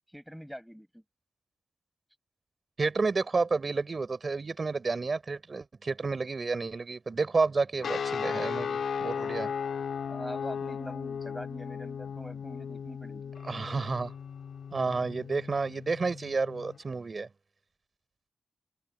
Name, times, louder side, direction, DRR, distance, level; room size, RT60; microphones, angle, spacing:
voice 1, 0.1-1.0 10.1-13.3, equal, ahead, 6.8 m, -43 dB
voice 2, 2.8-9.5 13.4-14.1 14.7-17.3, right 4 dB, 45° right, 3.9 m, -30 dB
sound 1, 7.8-16.8, left 7 dB, 90° left, 2.3 m, -36 dB
wide cardioid pair, 95°, 0 cm